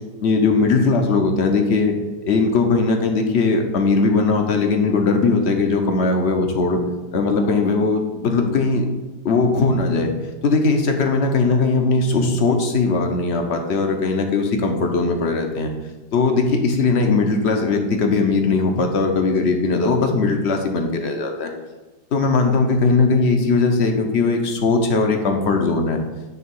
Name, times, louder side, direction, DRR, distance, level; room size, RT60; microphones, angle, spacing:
voice 1, 0.2-1.9 2.3-6.8 7.1-8.9 9.2-10.1 10.4-15.7 16.1-21.5 22.1-26.0, left 3 dB, 50° left, 3 dB, 0.9 m, -19 dB
9.6 x 3.5 x 5.4 m, 1.2 s
omnidirectional pair, 1.9 m